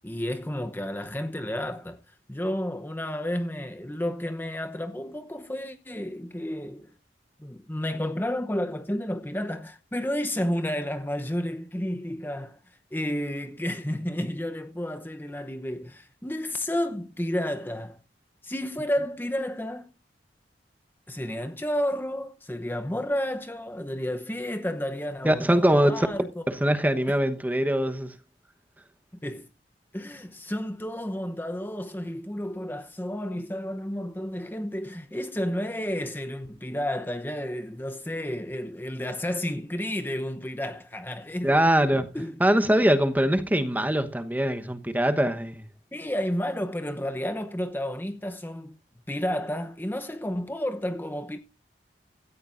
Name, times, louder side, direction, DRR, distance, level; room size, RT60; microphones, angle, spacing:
voice 1, 0.0-2.0 2.3-6.9 7.4-12.6 12.9-18.0 18.4-19.9 21.1-26.4 29.2-29.5 29.9-41.6 42.1-42.4 45.9-48.8 49.1-51.4, left 1 dB, 10° left, 0.8 m, -31 dB
voice 2, 25.2-26.1 26.5-28.1 41.4-42.1 42.4-45.6, right 1 dB, 10° right, 1.1 m, -22 dB
16.5 x 14.0 x 2.6 m
head